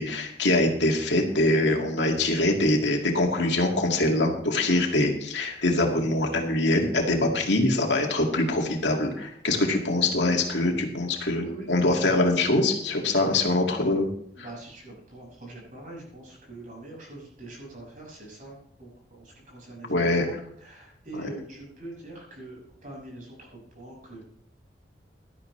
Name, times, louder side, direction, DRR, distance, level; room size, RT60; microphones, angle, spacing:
voice 1, 0.0-14.1 19.9-20.3 21.1-21.2, left 2 dB, 80° left, 1 dB, 2.4 m, -24 dB
voice 2, 9.5-9.8 11.4-11.9 14.4-20.3 20.6-24.2, right 2 dB, 45° right, -2 dB, 6.6 m, -43 dB
17.0 x 12.0 x 3.3 m, 0.68 s
head